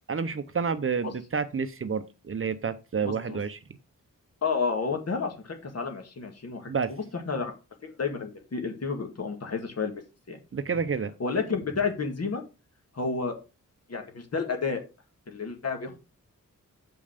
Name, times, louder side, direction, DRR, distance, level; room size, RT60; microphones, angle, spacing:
voice 1, 0.1-3.6 6.7-6.9 10.5-11.1, right 5 dB, 40° right, 0.7 m, -29 dB
voice 2, 3.0-3.4 4.4-7.5 7.8-10.0 10.3-10.4 11.2-12.4 12.9-13.4 13.9-14.8 15.3-16.0, left 5 dB, 50° left, 2.0 m, -31 dB
7.9 x 5.4 x 5.1 m
wide cardioid pair, 155°, 32 cm